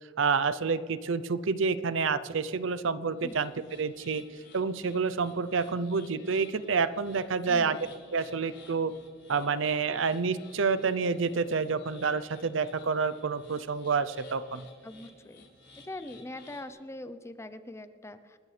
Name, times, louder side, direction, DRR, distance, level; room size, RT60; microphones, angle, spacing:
voice 1, 0.2-3.5 3.8-4.3 4.5-7.8 8.1-8.9 9.3-14.7, right 5 dB, 75° right, 15 dB, 0.6 m, -28 dB
sound 1, 3.1-16.7, left 3 dB, 65° left, 4.0 m, -56 dB
voice 2, 7.4-7.9 14.8-15.5 15.7-18.4, left 1 dB, 15° left, 11 dB, 0.7 m, -42 dB
28.0 x 13.5 x 3.3 m, 2.3 s
head